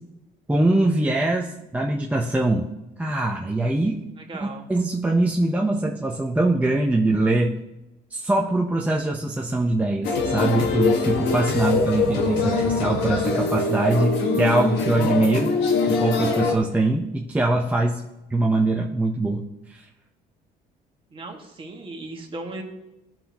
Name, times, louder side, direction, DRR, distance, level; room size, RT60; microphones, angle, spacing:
voice 1, 0.5-2.7 3.0-4.0 4.4-7.5 8.1-15.5 15.9-18.0 18.3-19.4 19.7-19.8, right 2 dB, 10° right, -1 dB, 0.7 m, -22 dB
voice 2, 4.2-4.6 21.1-22.6, right 2 dB, 30° right, 1 dB, 1.7 m, -36 dB
sound 1, 10.0-16.6, left 4 dB, 85° left, 1.4 m, -23 dB
14.0 x 5.9 x 2.9 m, 0.96 s
cardioid pair, 110°, 17 cm